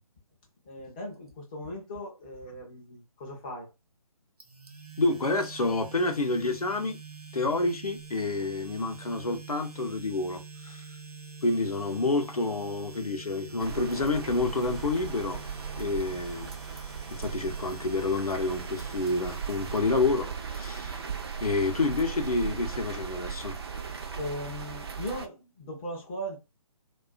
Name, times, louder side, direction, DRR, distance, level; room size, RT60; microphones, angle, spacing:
voice 1, 0.6-3.7 24.2-26.4, equal, 15° left, 0.4 m, -38 dB
sound 1, 4.4-20.4, right 4 dB, 85° right, 0.7 m, -46 dB
voice 2, 5.0-7.0 7.3-10.9 11.4-15.4 15.7-16.5 17.2-21.0 21.4-23.6, left 3 dB, 80° left, 0.7 m, -28 dB
sound 2, 13.6-25.3, right 6 dB, 45° right, 0.4 m, -37 dB
2.3 x 2.3 x 2.3 m
figure-of-eight pair, 145°, 19 cm